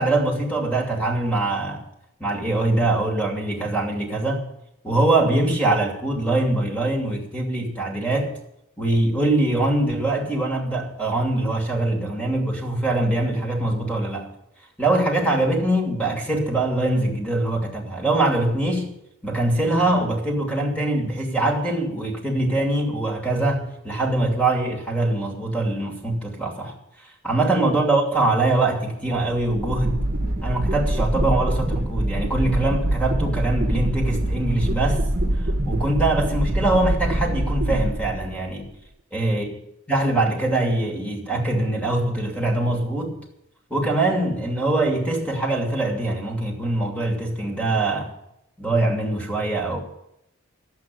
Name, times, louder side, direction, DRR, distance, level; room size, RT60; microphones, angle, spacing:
voice 1, 0.0-1.8 2.2-4.5 4.8-8.4 8.8-14.3 14.8-18.9 19.2-26.7 27.0-30.0 30.4-35.1 35.6-38.7 39.1-39.4 39.9-43.2 43.7-48.1 48.6-49.8, right 2 dB, 5° left, 2.7 m, -23 dB
sound 1, 29.4-38.6, right 1 dB, 45° right, 1.3 m, -24 dB
11.5 x 8.4 x 9.3 m
head